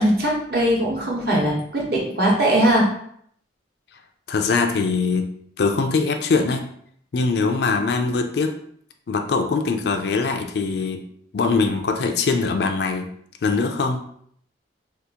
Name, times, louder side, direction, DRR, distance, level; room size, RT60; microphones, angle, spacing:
voice 1, 0.0-2.9, right 1 dB, 55° right, -3 dB, 1.0 m, -20 dB
voice 2, 4.3-5.3 5.6-6.7 7.1-8.6 9.1-11.0 11.3-13.1 13.4-14.0, left 4 dB, 60° left, 5 dB, 0.4 m, -22 dB
2.8 x 2.4 x 3.6 m, 0.66 s
head